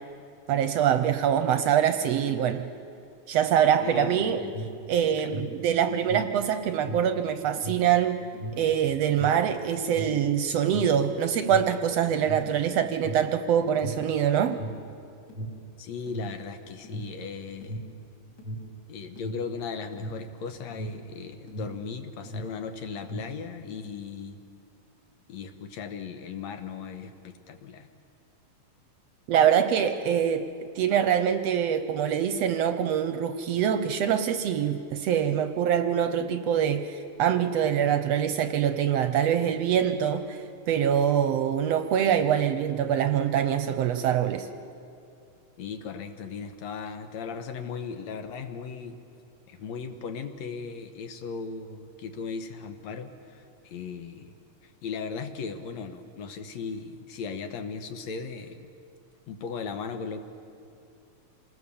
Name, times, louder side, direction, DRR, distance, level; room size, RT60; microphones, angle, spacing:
voice 1, 0.5-2.7 3.3-4.4 4.9-8.2 8.6-14.6 29.3-30.5 30.8-44.5, right 9 dB, 70° right, 9 dB, 1.7 m, -24 dB
voice 2, 3.8-4.5 15.8-17.8 18.9-24.4 25.3-27.9 45.6-49.0 49.5-54.3 54.6-58.7 59.3-60.2, left 5 dB, 70° left, 7 dB, 2.3 m, -37 dB
Alarm, 4.5-21.9 22.2-23.5, right 1 dB, 35° left, 2.9 m, -38 dB
27.0 x 20.0 x 7.0 m, 2.5 s
omnidirectional pair, 3.4 m